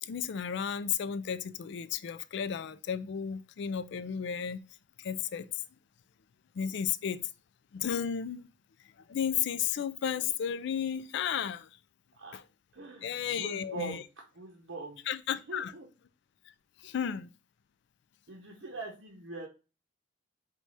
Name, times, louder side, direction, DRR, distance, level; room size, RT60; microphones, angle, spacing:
voice 1, 0.0-4.6 5.0-5.6 6.5-7.2 7.7-8.5 9.1-11.7 12.3-12.4 13.0-14.0 15.1-15.7 16.8-17.3, left 8 dB, 65° left, 0.3 m, -33 dB
voice 2, 12.7-14.0 14.4-15.1 15.5-15.9 16.8-17.0 18.3-19.5, right 3 dB, 75° right, 0.8 m, -43 dB
4.6 x 2.3 x 4.0 m
head